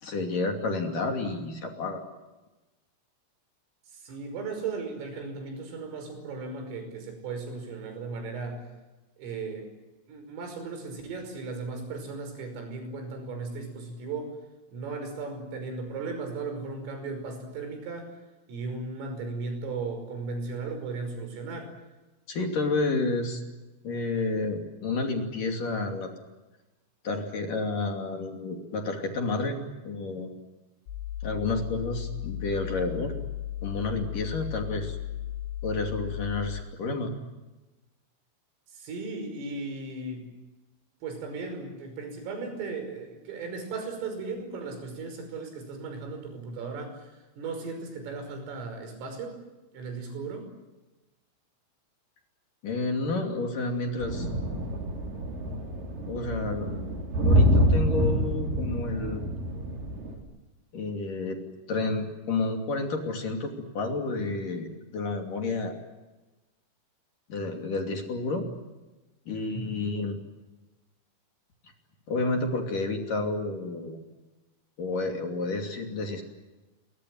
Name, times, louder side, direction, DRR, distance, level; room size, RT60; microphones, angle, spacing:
voice 1, 0.0-2.0 22.3-23.4 23.8-26.1 27.0-29.6 29.9-30.3 31.2-33.1 33.6-35.0 35.6-37.1 52.6-54.3 56.0-56.7 57.2-59.2 60.7-61.4 61.7-64.7 64.9-65.8 67.3-68.5 69.3-70.2 72.1-74.0 74.8-76.2, left 3 dB, 45° left, 3 dB, 3.9 m, -30 dB
voice 2, 3.9-8.6 9.2-9.7 10.1-14.3 14.7-18.1 18.5-21.7 38.7-40.3 41.0-47.1 47.4-49.4 49.7-50.5 69.5-69.8, right 4 dB, 85° right, 6 dB, 8.1 m, -36 dB
sound 1, 30.9-36.6, left 12 dB, 70° left, 5.1 m, -35 dB
sound 2, 54.0-60.2, equal, 45° right, 5.7 m, -26 dB
29.5 x 24.0 x 7.8 m, 1.1 s
omnidirectional pair, 5.7 m